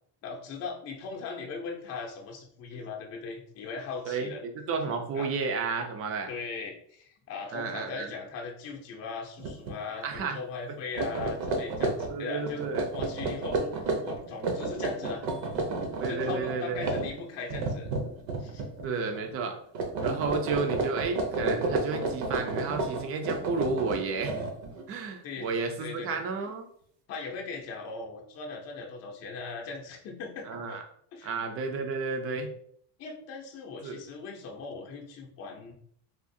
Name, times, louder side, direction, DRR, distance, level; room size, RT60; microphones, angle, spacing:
voice 1, 0.2-4.4 5.1-5.3 6.3-15.2 16.1-17.9 18.4-18.7 25.2-25.5 25.8-26.2 27.1-30.8 31.1-31.3 31.7-31.9 33.0-35.7, left 4 dB, 35° left, 0 dB, 0.6 m, -39 dB
voice 2, 4.1-6.3 7.5-8.1 10.0-10.4 12.1-12.9 16.0-16.9 18.8-19.6 20.0-24.4 24.9-26.7 30.5-30.8 31.2-32.5 33.8-34.0, right 4 dB, 30° right, 4 dB, 0.4 m, -32 dB
sound 1, 9.4-9.8 10.1-10.3 10.8-18.9 19.1-19.5 19.7-24.8, right 3 dB, 65° right, 0.8 m, -31 dB
3.6 x 2.4 x 2.6 m, 0.62 s
cardioid pair, 155°, 45 cm